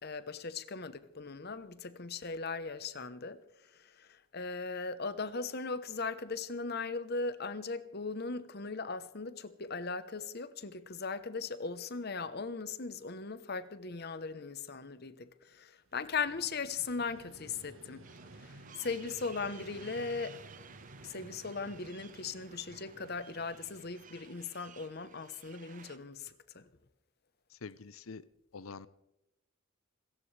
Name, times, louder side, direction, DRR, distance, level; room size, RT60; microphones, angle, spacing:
voice 1, 0.0-18.0 18.4-20.4 21.0-26.7, left 4 dB, 50° left, 0.9 m, -39 dB
Vehicle, 15.8-24.8, right 2 dB, 80° right, 1.4 m, -55 dB
sound 1, 18.0-26.0, right 7 dB, 40° right, 0.9 m, -56 dB
voice 2, 27.6-28.2 28.5-28.9, left 4 dB, 80° left, 0.7 m, -45 dB
27.5 x 14.5 x 3.3 m
head